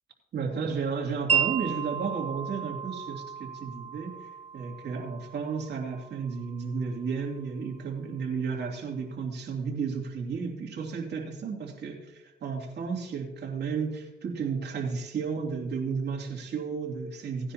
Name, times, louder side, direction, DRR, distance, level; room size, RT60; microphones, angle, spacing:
voice 1, 0.3-4.1 4.5-17.5, right 5 dB, 60° right, 0 dB, 2.8 m, -33 dB
Wind chime, 1.3-7.4, right 7 dB, 30° right, 1.1 m, -34 dB
18.0 x 9.9 x 2.9 m, 0.97 s
cardioid pair, 90°, 20 cm